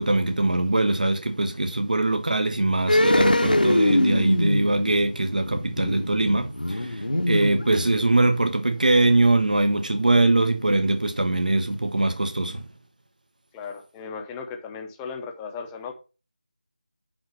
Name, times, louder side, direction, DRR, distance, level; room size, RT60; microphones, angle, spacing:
voice 1, 0.0-12.6, right 2 dB, 65° right, 1.3 m, -22 dB
sound 1, 2.9-8.3 8.6-8.7, left 1 dB, 85° left, 1.2 m, -23 dB
voice 2, 13.5-15.9, left 5 dB, 5° left, 0.7 m, -36 dB
8.6 x 3.9 x 6.0 m
figure-of-eight pair, 165°, 5 cm